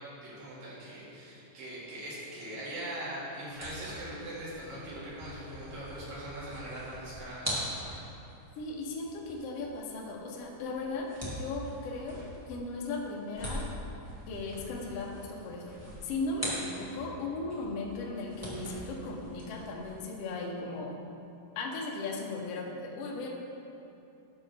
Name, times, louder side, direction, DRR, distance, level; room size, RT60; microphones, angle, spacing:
voice 1, 0.2-7.7, right 1 dB, 75° right, -9 dB, 3.8 m, -41 dB
sound 1, 3.5-17.2 17.5-20.0, equal, 25° right, 0.3 m, -43 dB
voice 2, 8.6-12.2 12.5-13.7 14.3-15.7 16.0-21.0 21.5-23.3, left 3 dB, 75° left, -1 dB, 1.4 m, -37 dB
11.0 x 6.3 x 3.3 m, 2.8 s
omnidirectional pair, 4.1 m